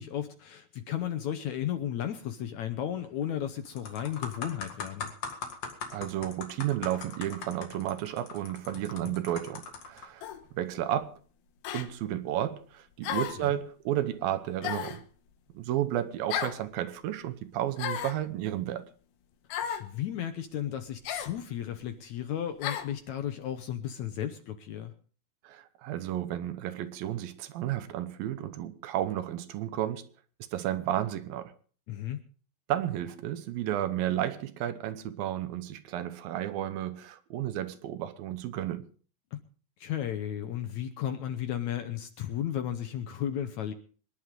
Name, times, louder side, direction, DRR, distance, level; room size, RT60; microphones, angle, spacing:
voice 1, 0.0-5.1 9.0-9.1 13.4-13.6 19.8-24.9 31.9-32.2 39.3-39.4 39.8-43.7, left 10 dB, 70° left, 1.9 m, -34 dB
sound 1, 3.0-3.3 3.6-10.0 10.7-10.9, left 5 dB, 50° left, 2.9 m, -40 dB
voice 2, 5.9-10.3 10.5-11.2 11.7-15.0 15.5-18.9 25.4-30.1 30.5-31.5 32.7-38.9, right 12 dB, 75° right, 2.6 m, -32 dB
sound 2, 10.2-10.4 11.6-11.9 13.0-13.5 14.6-15.0 16.3-16.6 17.8-18.2 19.5-19.9 21.0-21.3 22.6-22.9, left 9 dB, 85° left, 3.0 m, -33 dB
25.0 x 10.5 x 3.7 m
omnidirectional pair, 4.3 m